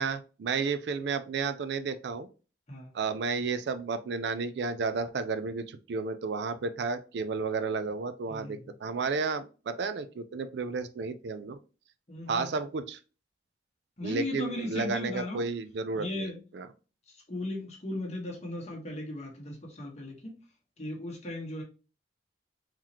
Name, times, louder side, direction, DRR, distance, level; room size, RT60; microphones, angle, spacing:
voice 1, 0.0-2.3 2.9-11.6 12.3-13.0 14.0-16.7, right 4 dB, 60° right, 0.4 m, -32 dB
voice 2, 8.3-8.7 12.1-12.5 14.0-15.4 15.9-16.4 17.1-20.3 20.8-21.6, left 1 dB, 35° left, 1.2 m, -37 dB
3.9 x 3.0 x 2.8 m
head